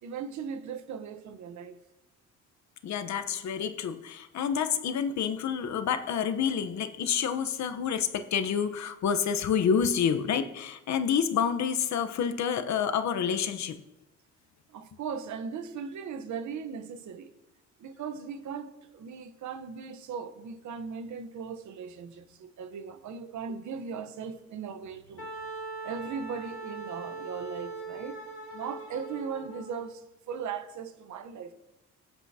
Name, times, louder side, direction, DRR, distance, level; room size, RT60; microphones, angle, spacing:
voice 1, 0.0-1.8 14.7-17.3 17.8-25.3 25.8-28.2 28.5-31.5, right 6 dB, 75° right, 1.1 m, -38 dB
voice 2, 2.8-13.8, left 7 dB, 65° left, 1.0 m, -28 dB
Wind instrument woodwind instrument, 25.2-29.8, right 3 dB, 45° left, 2.3 m, -40 dB
21.5 x 8.0 x 2.9 m
cardioid pair, 90°, 30 cm